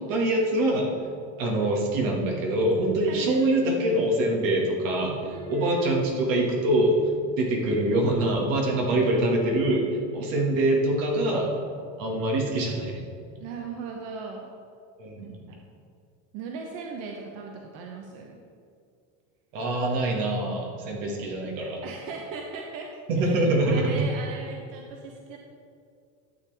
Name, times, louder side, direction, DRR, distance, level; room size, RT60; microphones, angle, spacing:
voice 1, 0.1-0.9 1.4-7.0 7.3-9.8 10.1-11.5 12.0-13.0 15.0-15.4 19.5-21.8 23.1-24.1, right 1 dB, 90° right, -1 dB, 2.0 m, -24 dB
voice 2, 3.1-3.5 5.2-5.9 13.4-14.5 15.2-15.6 16.3-18.4 21.8-22.9 23.2-25.4, right 4 dB, 65° right, 1 dB, 1.0 m, -39 dB
11.5 x 6.9 x 3.5 m, 2.4 s
supercardioid pair, 120°, 38 cm